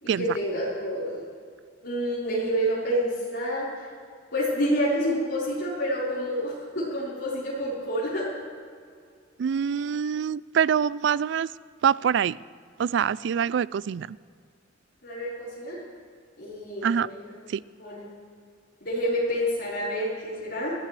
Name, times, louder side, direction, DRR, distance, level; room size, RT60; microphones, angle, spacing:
voice 1, 0.0-1.2 1.8-3.7 4.3-8.3 15.0-15.8 16.4-17.2 17.8-18.1 18.8-20.7, equal, 60° left, -9 dB, 4.6 m, -28 dB
voice 2, 9.4-11.5 11.8-12.4 12.8-14.2 16.8-17.1 17.5-17.6, right 7 dB, 70° right, 20 dB, 0.3 m, -25 dB
23.0 x 16.0 x 3.3 m, 2.1 s
head